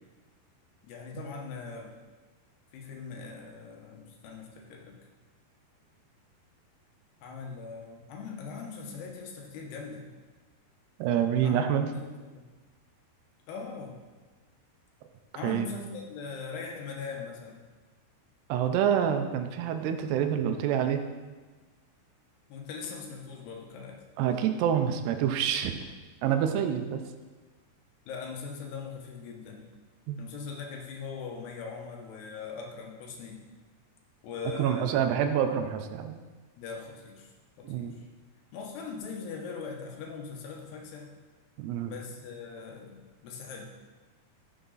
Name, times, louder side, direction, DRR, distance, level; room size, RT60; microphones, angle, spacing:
voice 1, 0.8-1.9 2.7-5.0 7.2-10.0 11.4-12.5 13.5-13.9 15.4-17.6 22.5-24.0 28.1-29.6 30.2-33.4 34.2-35.1 36.6-37.3 37.6-38.1 38.5-41.1 41.8-43.7, left 5 dB, 80° left, 0 dB, 3.4 m, -41 dB
voice 2, 11.0-11.9 15.4-15.7 18.5-21.0 24.2-25.8 26.2-27.0 30.1-30.2 34.6-36.2 37.6-37.9 41.6-41.9, right 9 dB, 85° right, 7 dB, 2.9 m, -27 dB
15.0 x 7.1 x 4.0 m, 1.3 s
omnidirectional pair, 4.7 m